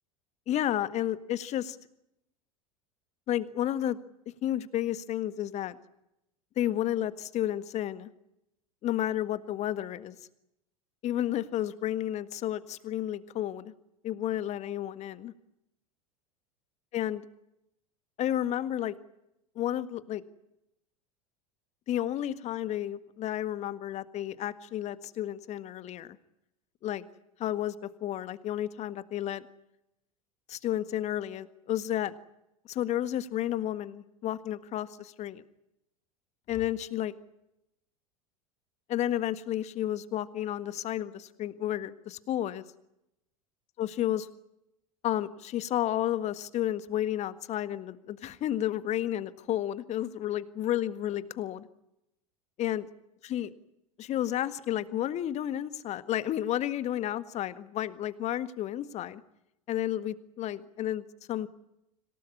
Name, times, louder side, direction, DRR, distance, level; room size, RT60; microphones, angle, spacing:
voice 1, 0.5-1.8 3.3-4.0 4.4-5.8 6.5-8.1 8.8-10.2 11.0-13.7 14.0-15.3 16.9-17.2 18.2-19.0 19.5-20.2 21.9-26.2 26.8-27.0 27.4-27.7 28.0-29.5 30.5-32.1 32.6-35.4 36.5-37.1 38.9-42.6 43.8-44.3 45.0-51.7 52.6-52.8 53.2-53.5 54.0-59.2 59.7-61.5, left 12 dB, 40° left, 14 dB, 1.6 m, -31 dB
26.5 x 18.0 x 9.6 m, 0.85 s
figure-of-eight pair, 80°, 18 cm